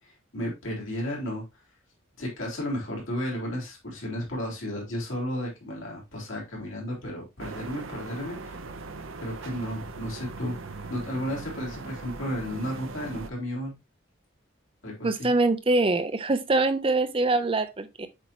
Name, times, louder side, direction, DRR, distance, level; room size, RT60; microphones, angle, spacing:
voice 1, 0.0-1.4 2.2-8.6 9.2-10.6 10.9-13.8 14.8-15.3, equal, 75° left, 3.4 m, -33 dB
sound 1, 7.4-13.3, right 3 dB, 75° right, 0.8 m, -40 dB
voice 2, 15.0-18.1, right 2 dB, 25° right, 0.5 m, -24 dB
7.9 x 4.3 x 2.9 m
head